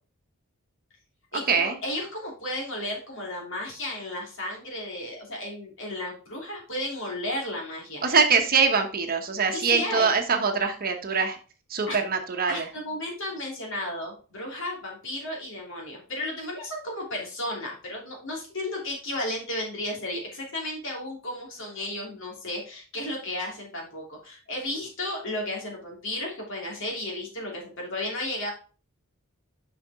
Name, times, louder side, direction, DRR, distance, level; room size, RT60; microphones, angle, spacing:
voice 1, 1.3-8.2 9.5-10.1 11.9-12.0 12.5-28.5, left 1 dB, 60° left, -1 dB, 3.0 m, -33 dB
voice 2, 8.0-11.4 11.7-12.6, right 5 dB, 45° right, 5 dB, 1.1 m, -23 dB
7.0 x 5.8 x 3.5 m, 0.37 s
head